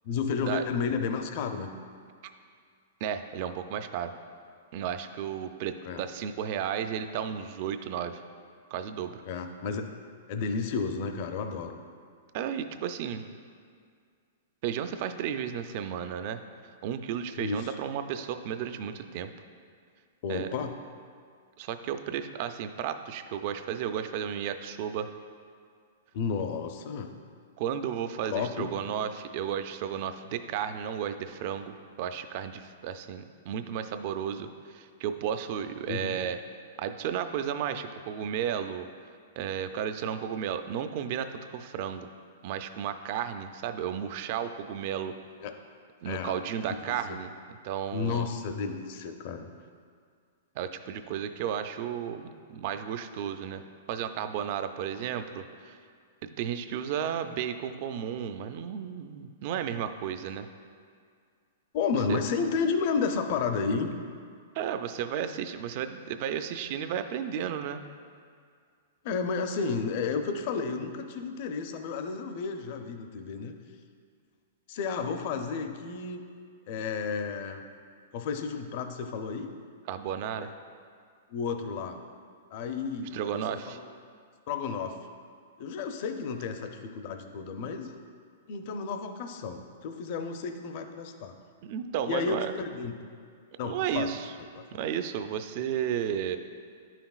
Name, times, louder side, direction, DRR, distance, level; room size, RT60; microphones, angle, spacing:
voice 1, 0.0-1.7 5.8-6.0 9.2-9.9 10.3-11.8 17.4-17.7 20.2-20.7 26.1-27.1 28.3-28.7 35.9-36.2 45.4-45.5 46.0-46.3 46.6-46.9 47.9-49.5 61.7-63.9 69.0-73.6 74.7-76.2 76.7-77.6 78.1-79.5 80.4-80.5 81.3-82.0 82.5-83.9 84.5-85.0 85.6-88.0 88.5-91.3 92.1-92.9 93.6-94.1 94.6-94.7, left 5 dB, 45° left, 6 dB, 0.5 m, -32 dB
voice 2, 3.0-4.1 4.7-8.2 8.7-9.2 12.3-13.2 14.6-16.4 16.8-19.3 20.3-20.5 21.6-25.1 27.6-36.4 36.8-38.9 39.4-42.1 42.4-45.1 46.0-47.3 47.6-48.3 50.6-53.6 53.9-55.8 56.4-60.5 62.1-62.2 64.5-67.8 79.9-80.5 83.1-83.8 91.6-92.5 93.6-94.3 94.7-96.4, right 9 dB, 45° right, 9 dB, 0.4 m, -33 dB
9.7 x 5.8 x 2.4 m, 2.1 s
hypercardioid pair, 155°, 0 cm